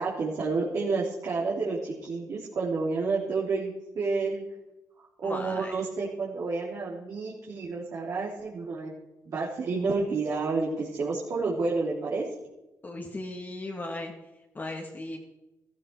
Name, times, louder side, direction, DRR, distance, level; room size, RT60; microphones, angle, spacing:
voice 1, 0.0-4.4 5.0-8.9 9.3-12.3, right 4 dB, 60° right, -5 dB, 3.6 m, -30 dB
voice 2, 5.2-5.7 12.8-14.1 14.5-15.2, left 2 dB, 30° left, 1 dB, 2.4 m, -36 dB
15.0 x 14.5 x 4.9 m, 0.98 s
cardioid pair, 70°, 6 cm